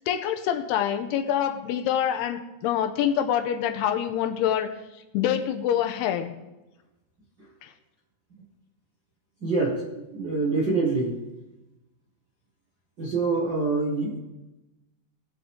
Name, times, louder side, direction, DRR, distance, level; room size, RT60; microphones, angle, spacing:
voice 1, 0.1-4.7 5.1-6.4 7.6-7.7, left 10 dB, 85° left, 7 dB, 2.7 m, -26 dB
voice 2, 9.4-11.2 13.0-14.2, right 3 dB, 45° right, -4 dB, 1.5 m, -25 dB
21.0 x 7.7 x 3.7 m, 0.99 s
omnidirectional pair, 4.8 m